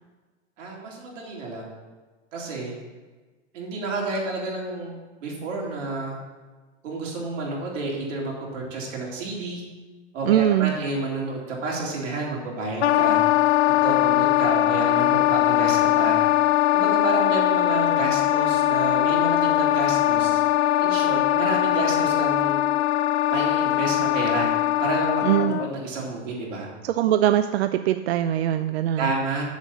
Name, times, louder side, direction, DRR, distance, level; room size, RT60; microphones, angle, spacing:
voice 1, 0.6-1.7 2.3-2.8 3.5-4.9 5.2-6.2 6.8-9.6 10.1-13.2 13.8-16.2 16.7-20.4 20.8-22.6 23.3-24.5 24.8-26.7 29.0-29.4, right 3 dB, 80° right, -2 dB, 3.8 m, -30 dB
voice 2, 10.2-10.7 25.2-25.6 26.8-29.1, right 12 dB, 60° right, 10 dB, 0.5 m, -22 dB
Wind instrument woodwind instrument, 12.8-25.7, left 15 dB, 60° left, 0.5 m, -21 dB
7.3 x 7.2 x 7.4 m, 1.3 s
supercardioid pair, 165°, 36 cm